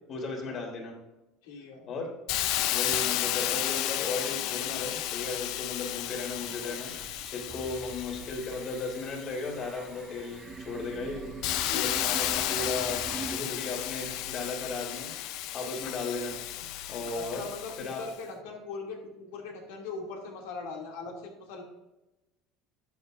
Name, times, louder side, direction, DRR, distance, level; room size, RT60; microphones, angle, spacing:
voice 1, 0.1-0.9 1.8-2.1 2.7-16.4 16.9-17.4 17.8-18.0, left 3 dB, 45° left, 1 dB, 3.4 m, -36 dB
voice 2, 1.4-1.8 7.5-7.7 11.7-12.0 17.1-21.6, left 4 dB, 85° left, 0 dB, 2.6 m, -40 dB
Hiss, 2.3-9.9 10.4-18.1, left 13 dB, 70° left, 0.5 m, -33 dB
sound 1, 6.3-13.4, right 5 dB, 25° right, 0.4 m, -44 dB
12.0 x 9.0 x 2.6 m, 1.0 s
supercardioid pair, 115°, 0 cm